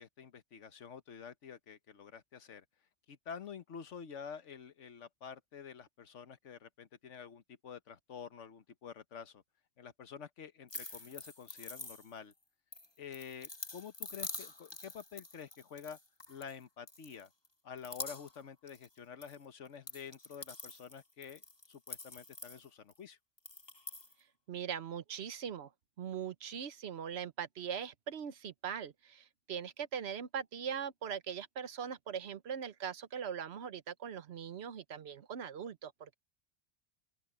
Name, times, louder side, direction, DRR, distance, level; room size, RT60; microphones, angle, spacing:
voice 1, 0.0-2.6 3.1-9.4 9.8-12.3 13.0-16.0 16.3-17.3 17.6-21.4 21.7-23.2, left 7 dB, 85° left, 1.4 m, -49 dB
sound 1, 10.7-12.3 12.7-16.5 16.9-17.5 17.8-18.4 18.7-19.3 19.6-23.0 23.4-24.1, left 2 dB, 20° left, 1.5 m, -46 dB
voice 2, 24.5-25.7 26.0-36.1, right 8 dB, 65° right, 1.1 m, -41 dB
open air
omnidirectional pair, 1.2 m